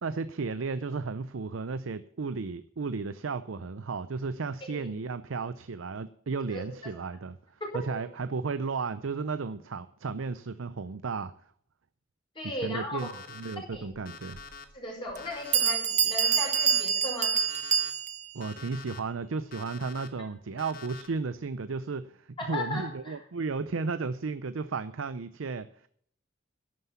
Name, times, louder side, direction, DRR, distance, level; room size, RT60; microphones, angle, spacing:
voice 1, 0.0-11.3 12.6-14.4 18.3-25.9, right 4 dB, 90° right, 13 dB, 0.6 m, -34 dB
voice 2, 6.5-6.9 7.6-8.0 12.4-13.1 13.7-13.8 14.7-17.4 22.4-23.1, left 1 dB, 25° left, -1 dB, 5.2 m, -36 dB
Alarm, 13.0-13.6 14.1-14.6 15.2-15.7 16.2-16.8 17.3-17.9 18.4-19.0 19.5-20.1 20.6-21.1, left 5 dB, 50° left, 1.5 m, -45 dB
Bell, 14.4-14.5 15.2-15.3 15.5-18.3, right 8 dB, 40° right, 0.9 m, -26 dB
11.5 x 9.6 x 7.1 m, 0.63 s
head